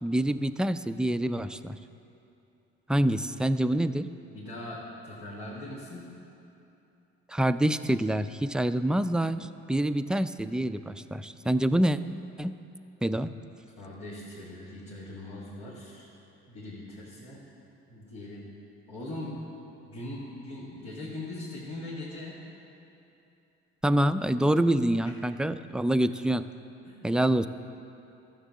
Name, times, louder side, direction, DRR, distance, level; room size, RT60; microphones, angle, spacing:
voice 1, 0.0-1.8 2.9-4.1 7.3-12.0 12.4-12.6 13.0-13.3 23.8-26.5 27.0-27.5, right 1 dB, 5° right, 11 dB, 0.3 m, -26 dB
voice 2, 4.3-6.1 13.4-13.5 13.8-16.1 16.5-17.4 17.9-18.5 18.9-19.4 19.9-22.4 25.0-25.1 26.9-27.1, left 1 dB, 80° left, -9 dB, 2.4 m, -40 dB
13.0 x 6.6 x 7.2 m, 2.8 s
hypercardioid pair, 55°, 33 cm